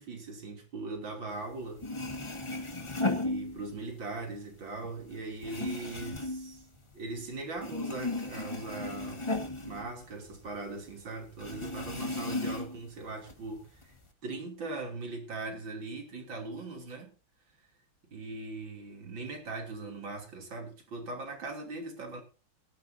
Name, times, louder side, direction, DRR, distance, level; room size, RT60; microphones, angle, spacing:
voice 1, 0.0-1.9 3.1-6.6 6.9-9.3 9.6-13.9 14.2-17.1 18.1-22.2, right 3 dB, 60° right, 3.7 m, -40 dB
sound 1, 1.5-1.6 1.8-4.0 4.4-7.3 7.6-10.6 10.8-10.9 11.4-12.9 13.3-14.0, left 2 dB, 15° left, 1.4 m, -35 dB
17.5 x 14.0 x 2.8 m
omnidirectional pair, 2.3 m